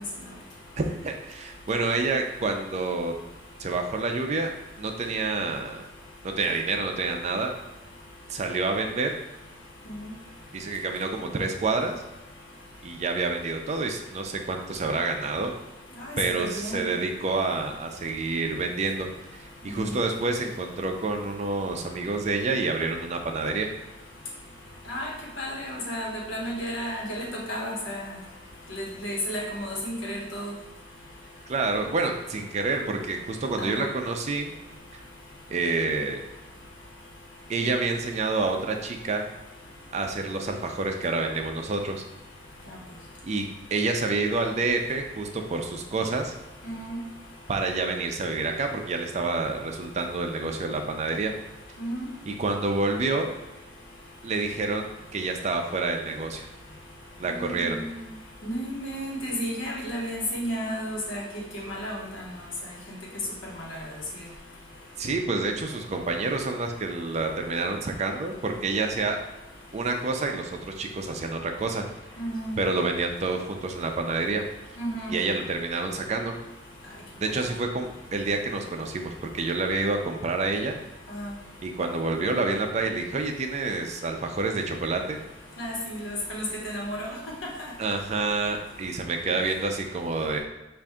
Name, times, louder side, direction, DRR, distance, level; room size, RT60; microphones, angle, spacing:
voice 1, 0.8-3.1 3.6-4.5 4.8-5.8 6.2-7.5 8.3-9.2 10.5-11.9 12.8-15.5 16.2-19.1 19.4-23.7 31.5-34.5 35.5-36.2 37.5-39.3 39.9-42.0 43.2-46.3 47.5-51.3 52.3-53.3 54.2-56.5 57.2-57.8 65.0-69.2 69.7-71.8 72.6-74.4 75.1-76.4 77.2-80.8 81.6-85.2 87.8-90.4, right 3 dB, 35° right, 4 dB, 0.4 m, -28 dB
voice 2, 16.0-16.8 24.9-25.1 25.4-28.0 28.7-30.5 33.6-33.9 46.6-47.0 51.8-52.0 57.3-57.9 58.4-61.2 61.5-62.0 72.2-72.6 74.8-75.2 81.1-81.3 85.6-87.1, equal, 80° left, -3 dB, 1.2 m, -32 dB
5.4 x 2.5 x 3.5 m, 1.0 s
head